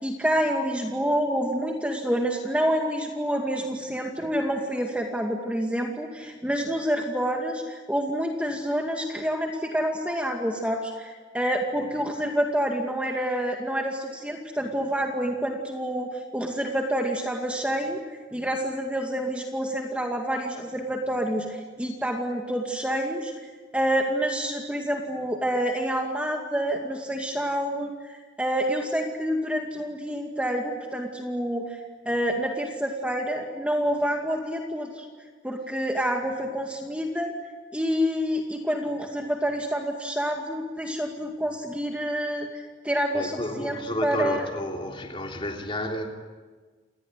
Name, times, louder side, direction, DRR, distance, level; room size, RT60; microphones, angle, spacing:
voice 1, 0.0-18.0 18.3-23.3 23.7-31.8 32.1-35.1 35.4-37.3 37.7-44.5, equal, 5° right, 2.2 m, -28 dB
voice 2, 43.1-46.1, equal, 25° left, 3.3 m, -31 dB
28.5 x 19.5 x 9.7 m
head